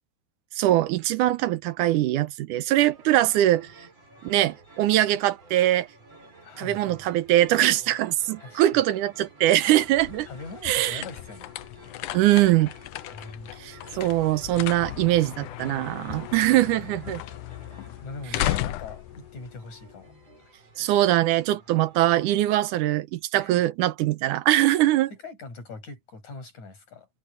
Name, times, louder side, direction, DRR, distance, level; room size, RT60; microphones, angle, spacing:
voice 1, 0.6-3.7 4.2-5.9 6.6-10.3 10.6-11.0 12.1-12.7 13.6-17.2 20.8-25.1, right 14 dB, 90° right, 2.4 m, -22 dB
sound 1, 2.9-22.4, right 2 dB, 55° right, 7.8 m, -52 dB
voice 2, 6.4-7.0 8.4-8.8 10.3-11.5 13.1-13.5 18.0-20.1 20.4-20.5 23.4-23.6 25.1-27.1, left 3 dB, 70° left, 8.9 m, -41 dB
sound 2, 9.6-20.4, left 14 dB, 85° left, 2.3 m, -36 dB
omnidirectional pair, 3.5 m